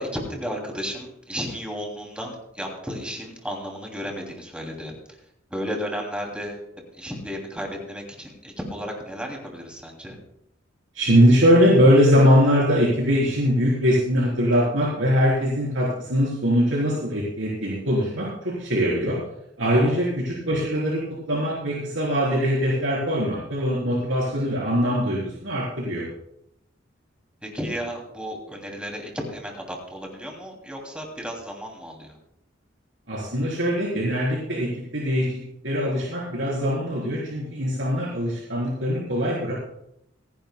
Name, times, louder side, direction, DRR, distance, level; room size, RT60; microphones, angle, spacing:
voice 1, 0.0-5.2 5.5-6.7 6.9-10.2 19.7-19.9 27.4-32.2, equal, 5° right, 1 dB, 2.8 m, -33 dB
voice 2, 10.9-19.2 19.6-21.0 21.3-26.0 33.1-34.7 34.9-35.4 35.6-39.5, equal, 75° right, -5 dB, 3.9 m, -21 dB
27.5 x 11.0 x 2.3 m, 0.76 s
head